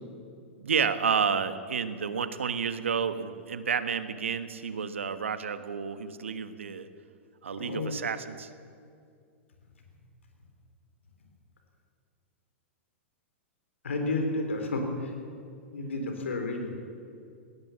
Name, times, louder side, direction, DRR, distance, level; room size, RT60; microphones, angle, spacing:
voice 1, 0.6-6.9 7.4-8.5, right 6 dB, 75° right, 11 dB, 1.4 m, -30 dB
voice 2, 7.6-8.0 13.8-15.1 15.7-16.7, left 2 dB, 75° left, 4 dB, 4.0 m, -31 dB
20.0 x 18.5 x 7.2 m, 2.3 s
figure-of-eight pair, 100°, 7 cm